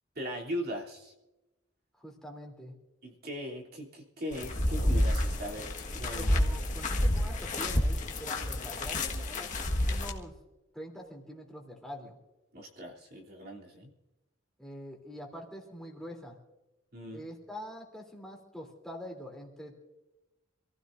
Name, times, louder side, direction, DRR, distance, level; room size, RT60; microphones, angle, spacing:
voice 1, 0.1-1.1 3.0-6.3 12.5-13.9 16.9-17.2, equal, 50° right, -2 dB, 3.3 m, -39 dB
voice 2, 2.0-2.7 6.1-9.5 9.9-10.4 10.7-12.2 14.6-16.4 17.1-19.8, equal, ahead, -1 dB, 3.3 m, -45 dB
sound 1, 4.3-10.1, left 1 dB, 40° left, 1.7 m, -29 dB
27.5 x 15.5 x 2.7 m, 1.0 s
head